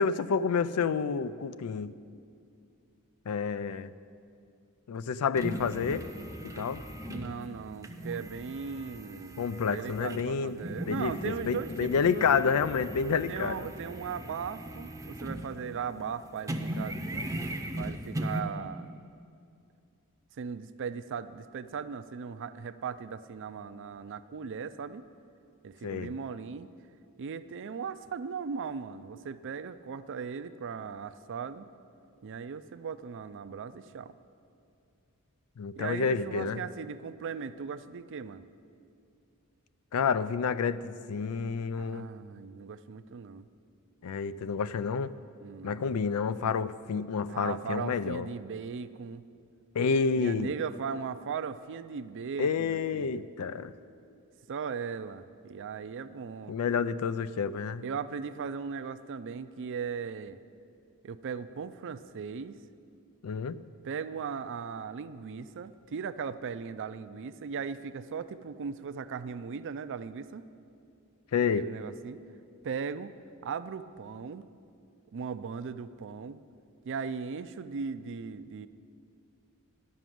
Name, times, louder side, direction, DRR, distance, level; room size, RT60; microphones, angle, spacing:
voice 1, 0.0-1.9 3.3-3.9 4.9-6.1 6.4-6.8 9.4-10.6 10.8-13.7 25.8-26.1 35.6-36.6 39.9-42.1 44.0-45.1 45.6-48.3 49.7-50.5 52.4-53.7 56.5-57.8 63.2-63.6 71.3-71.7, left 5 dB, 85° left, 15 dB, 0.4 m, -29 dB
sound 1, 5.3-15.8 16.1-18.4, right 1 dB, 15° right, 0.7 m, -39 dB
voice 2, 7.1-12.4 13.3-17.2 17.8-18.9 20.4-25.0 25.6-26.7 27.2-31.7 32.2-34.2 35.8-38.5 41.8-43.5 45.4-45.9 47.3-49.2 50.1-53.3 54.5-56.5 57.8-60.4 61.0-62.6 63.8-70.4 71.6-72.2 72.6-73.1 73.4-74.4 75.1-76.4 76.8-78.7, right 6 dB, 60° right, 13 dB, 0.4 m, -38 dB
11.5 x 6.1 x 9.2 m, 2.4 s
head